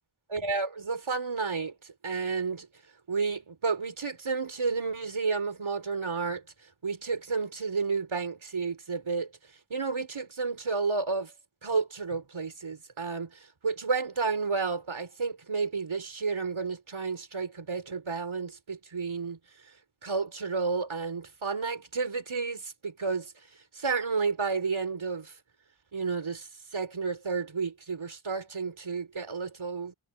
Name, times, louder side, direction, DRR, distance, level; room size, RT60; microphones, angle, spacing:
voice 1, 0.3-2.7 3.1-6.4 6.8-9.3 9.7-11.3 11.6-19.4 20.0-23.3 23.7-25.3 25.9-26.5 26.7-29.9, right 4 dB, 85° right, 4.5 m, -31 dB
wide cardioid pair, 65°, 47 cm